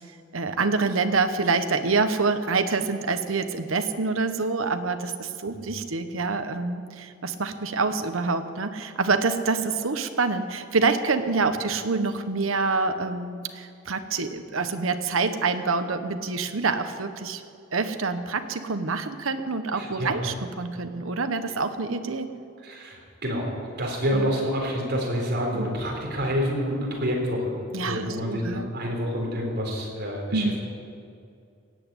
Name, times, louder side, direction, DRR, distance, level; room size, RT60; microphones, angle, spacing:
voice 1, 0.3-17.4 17.7-22.3 24.1-24.3 25.5-25.7 27.7-28.7 30.3-30.6, right 4 dB, 80° right, 9 dB, 1.0 m, -26 dB
voice 2, 19.7-20.2 22.6-23.5 23.8-27.6 27.8-30.6, equal, 55° right, -1 dB, 4.0 m, -28 dB
16.5 x 8.3 x 8.9 m, 2.4 s
head